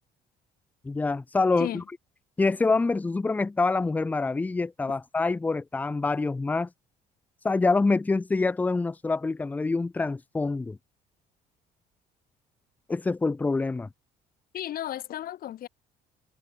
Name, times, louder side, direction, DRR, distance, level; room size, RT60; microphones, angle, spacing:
voice 1, 0.8-1.8 2.4-6.7 7.4-10.8 12.9-13.9, left 3 dB, 10° left, 0.3 m, -26 dB
voice 2, 14.5-15.7, left 12 dB, 60° left, 2.0 m, -34 dB
cardioid pair, 110°, 17 cm